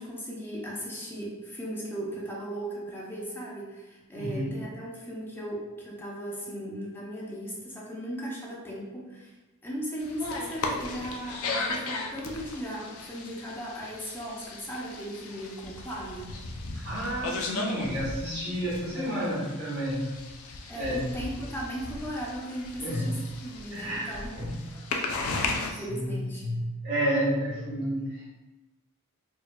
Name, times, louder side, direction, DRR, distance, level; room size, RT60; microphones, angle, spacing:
voice 1, 0.0-9.3 9.6-16.3 20.7-24.4 25.6-26.5, right 1 dB, 10° left, -4 dB, 0.6 m, -37 dB
voice 2, 4.1-4.5 16.7-20.1 20.7-21.1 22.8-23.2 23.7-24.5 25.2-28.3, equal, 45° right, -14 dB, 1.4 m, -31 dB
sound 1, 10.0-25.7, left 3 dB, 75° left, 0.4 m, -36 dB
4.5 x 2.5 x 2.2 m, 1.1 s
head